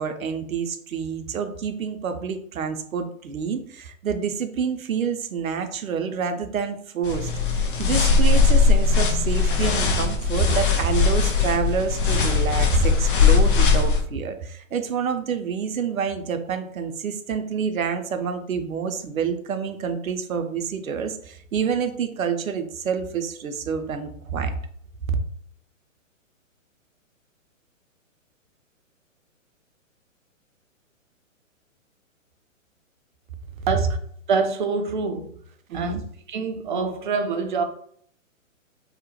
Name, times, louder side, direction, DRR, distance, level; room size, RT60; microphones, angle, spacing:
voice 1, 0.0-7.3 7.8-24.5 35.7-36.0, right 6 dB, 85° right, 0.6 m, -27 dB
sound 1, 7.0-14.0, left 5 dB, 40° left, 0.5 m, -19 dB
voice 2, 34.3-35.3 35.7-36.0 36.3-37.6, right 4 dB, 40° right, 0.4 m, -25 dB
2.8 x 2.1 x 2.8 m
hypercardioid pair, 130°, 40 cm